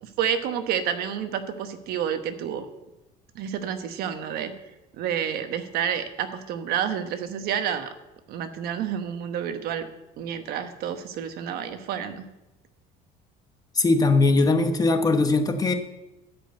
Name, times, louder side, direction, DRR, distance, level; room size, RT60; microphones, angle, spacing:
voice 1, 0.0-2.7 3.3-4.5 4.9-7.9 8.3-9.9 10.2-12.3, right 8 dB, 65° right, 8 dB, 1.2 m, -29 dB
voice 2, 13.7-15.7, left 3 dB, 20° left, 7 dB, 1.1 m, -20 dB
12.5 x 5.3 x 7.8 m, 0.98 s
cardioid pair, 130°, 17 cm